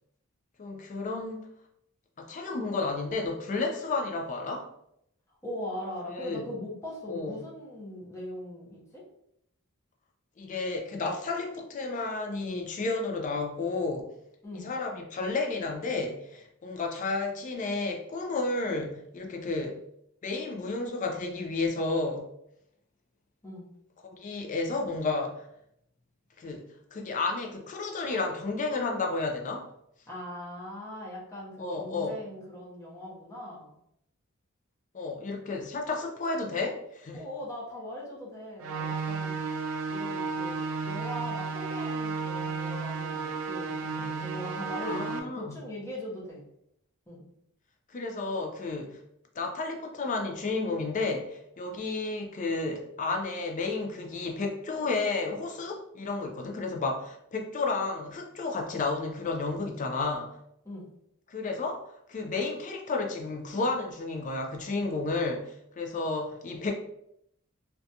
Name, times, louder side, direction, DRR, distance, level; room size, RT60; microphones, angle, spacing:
voice 1, 0.6-1.5 2.2-4.7 6.1-6.5 7.1-7.4 10.4-14.1 14.6-19.8 20.2-22.3 24.2-25.5 26.4-29.7 31.6-32.2 34.9-37.2 44.8-45.6 47.9-49.0 49.4-60.3 61.3-61.8 62.1-66.7, left 3 dB, 35° left, 3 dB, 0.4 m, -32 dB
voice 2, 5.4-9.0 14.4-14.6 23.4-23.7 30.1-33.8 37.1-39.3 39.9-46.4 47.1-47.2 60.6-60.9, left 1 dB, 15° left, -5 dB, 0.7 m, -40 dB
sound 1, 38.6-45.2, right 4 dB, 80° right, 0.4 m, -33 dB
2.5 x 2.2 x 2.7 m, 0.76 s
head